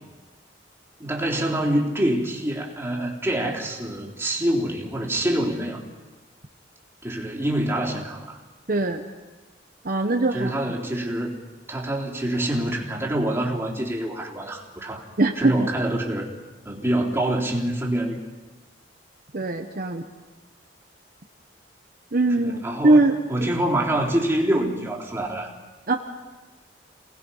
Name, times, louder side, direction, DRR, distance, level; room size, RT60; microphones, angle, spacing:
voice 1, 1.0-5.8 7.0-8.4 10.3-11.3 11.7-15.1 15.4-16.3 16.7-18.2 22.4-25.5, right 1 dB, 15° right, -2 dB, 3.5 m, -26 dB
voice 2, 8.7-9.0 9.8-10.5 15.2-15.7 19.3-20.0 22.1-23.2 25.9-26.0, right 2 dB, 50° right, 4 dB, 1.1 m, -21 dB
28.5 x 19.0 x 5.6 m, 1.2 s
head